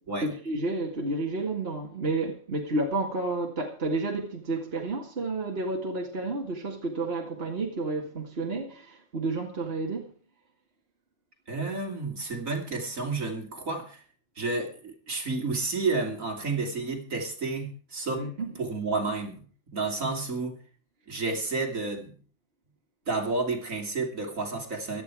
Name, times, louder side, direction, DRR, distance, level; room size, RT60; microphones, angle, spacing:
voice 1, 0.2-10.1 18.2-18.5, right 2 dB, 45° right, 2.3 m, -31 dB
voice 2, 11.5-14.0 14.4-18.2 18.6-19.4 19.7-20.6 21.1-22.1 23.1-25.0, right 3 dB, 65° right, 3.5 m, -31 dB
16.5 x 12.0 x 4.8 m
omnidirectional pair, 1.5 m